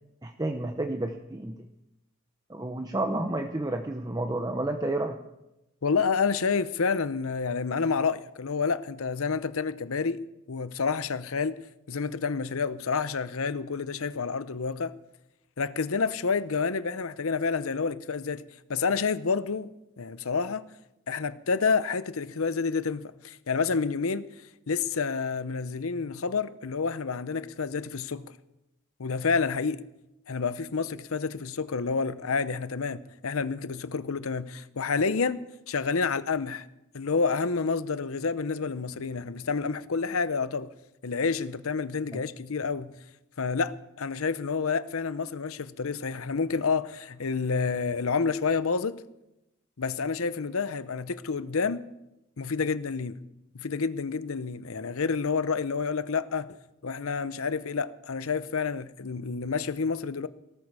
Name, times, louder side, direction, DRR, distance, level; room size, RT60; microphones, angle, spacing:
voice 1, 0.2-1.6 2.5-5.2 42.1-42.2, right 2 dB, 15° right, 0.7 m, -30 dB
voice 2, 5.8-10.2 10.5-11.6 11.9-14.9 15.6-18.4 18.7-19.7 20.0-20.6 21.1-24.2 24.7-28.2 29.0-29.8 30.3-35.4 35.7-36.7 36.9-40.7 41.0-42.9 43.4-49.0 49.8-51.8 52.4-53.2 53.5-56.6 56.8-60.3, left 5 dB, 70° left, 0.7 m, -29 dB
17.5 x 14.0 x 4.8 m
head